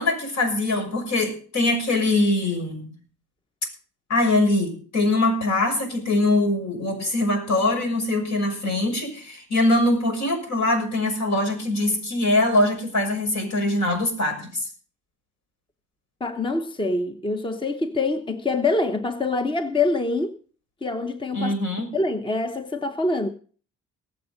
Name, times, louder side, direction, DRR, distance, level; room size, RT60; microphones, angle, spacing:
voice 1, 0.0-2.9 4.1-14.6 21.3-21.9, left 2 dB, 65° left, 6.1 m, -22 dB
voice 2, 16.2-20.3 20.8-21.5 21.9-23.3, left 3 dB, 15° left, 0.9 m, -25 dB
19.5 x 7.3 x 5.2 m
cardioid pair, 90°, 30 cm